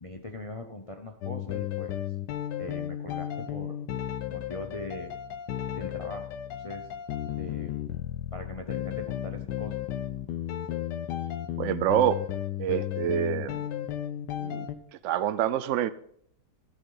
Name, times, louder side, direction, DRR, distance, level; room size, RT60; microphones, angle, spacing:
voice 1, 0.0-1.9 2.6-3.8 4.3-5.1 5.8-6.3 6.6-6.9 7.4-7.7 8.3-9.8, left 2 dB, 45° left, 4 dB, 0.4 m, -40 dB
sound 1, 1.2-14.8, left 11 dB, 80° left, 1.3 m, -34 dB
voice 2, 11.6-12.2 12.6-13.6 14.4-14.7 15.0-15.9, right 11 dB, 80° right, 14 dB, 0.6 m, -26 dB
13.5 x 8.3 x 3.9 m, 0.67 s
omnidirectional pair, 1.8 m